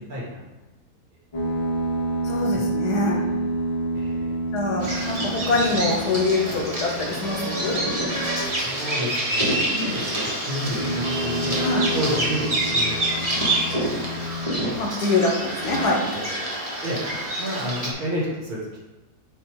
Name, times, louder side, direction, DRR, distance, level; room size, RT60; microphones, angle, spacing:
voice 1, 0.1-0.4 2.5-2.7 3.9-4.3 8.4-11.6 11.9-13.3 13.7-13.8 16.5-17.0 17.4-18.6, equal, 70° right, -5 dB, 2.2 m, -31 dB
sound 1, 1.3-8.7 10.6-14.8 15.5-15.8, right 1 dB, 25° left, 0.8 m, -29 dB
voice 2, 2.2-3.2 4.5-7.8 11.6-11.9 14.8-16.0, left 3 dB, 75° left, 0 dB, 1.6 m, -24 dB
Bird vocalization bird call bird song, 4.8-17.9, right 1 dB, 25° right, 1.3 m, -27 dB
7.6 x 2.7 x 4.7 m, 1.1 s
omnidirectional pair, 1.7 m